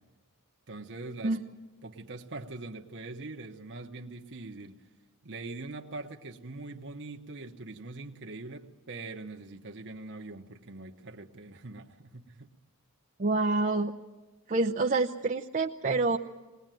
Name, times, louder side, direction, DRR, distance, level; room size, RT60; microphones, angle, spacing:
voice 1, 0.7-1.4 1.8-4.8 5.2-12.5, right 3 dB, 55° right, 3 dB, 1.1 m, -42 dB
voice 2, 13.2-14.0 14.5-16.2, right 3 dB, 35° right, 2 dB, 0.7 m, -27 dB
21.0 x 19.5 x 9.1 m, 1.2 s
head